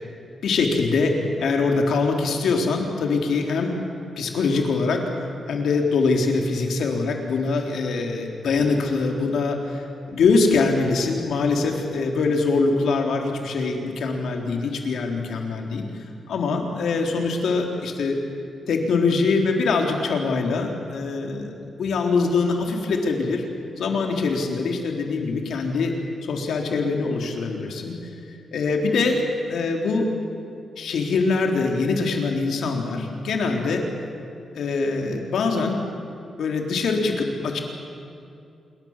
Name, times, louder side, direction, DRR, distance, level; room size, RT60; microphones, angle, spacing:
voice 1, 0.4-3.8 4.2-5.0 5.5-15.9 16.3-18.2 18.7-23.4 23.8-25.9 26.2-27.9 28.5-29.2 29.5-30.1 30.8-33.8 34.5-35.8 36.4-37.6, left 4 dB, 75° left, 2 dB, 3.7 m, -23 dB
27.0 x 22.5 x 7.5 m, 2.5 s
wide cardioid pair, 150°, 0 cm